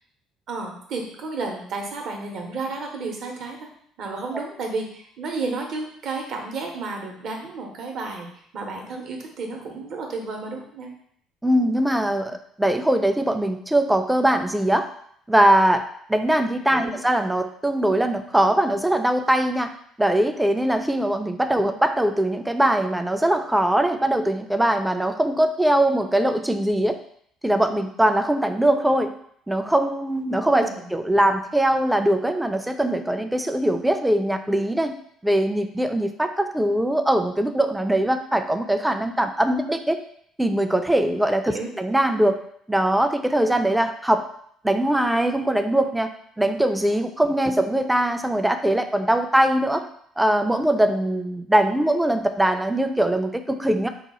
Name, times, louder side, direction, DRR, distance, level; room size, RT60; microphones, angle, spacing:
voice 1, 0.5-3.7 4.0-8.3 8.5-10.9 16.7-17.0 30.4-30.8 41.5-41.7, right 3 dB, 55° right, 2 dB, 0.7 m, -32 dB
voice 2, 11.4-14.9 15.3-15.8 16.1-19.7 20.0-27.0 27.4-29.1 29.5-34.9 35.2-40.0 40.4-42.4 42.7-44.2 44.6-46.1 46.4-49.8 50.2-53.9, right 1 dB, 5° right, 8 dB, 0.4 m, -21 dB
2.9 x 2.2 x 4.1 m, 0.66 s
figure-of-eight pair, 55°, 0 cm